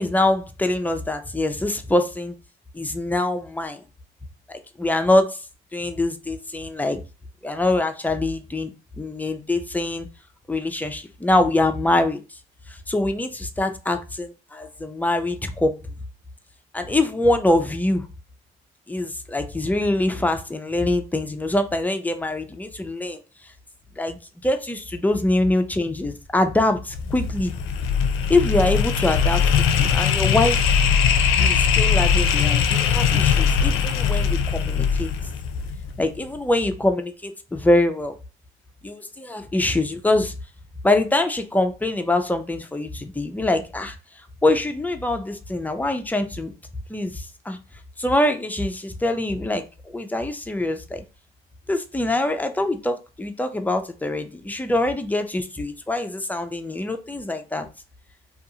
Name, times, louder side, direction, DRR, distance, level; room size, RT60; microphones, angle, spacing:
voice 1, 0.0-2.4 2.7-3.8 4.5-5.4 5.7-7.0 7.4-10.1 10.5-12.2 12.7-15.7 16.7-18.1 18.9-23.2 24.0-27.5 28.3-29.5 29.8-30.7 31.4-35.1 36.0-38.1 38.8-40.4 40.8-44.0 44.4-46.5 46.9-47.6 48.0-49.7 49.9-51.0 51.7-57.7, left 2 dB, 10° left, 7 dB, 0.4 m, -24 dB
sound 1, 26.9-36.0, left 7 dB, 85° left, 0.4 m, -20 dB
2.5 x 2.3 x 2.7 m, 0.30 s
cardioid pair, 90°, 20 cm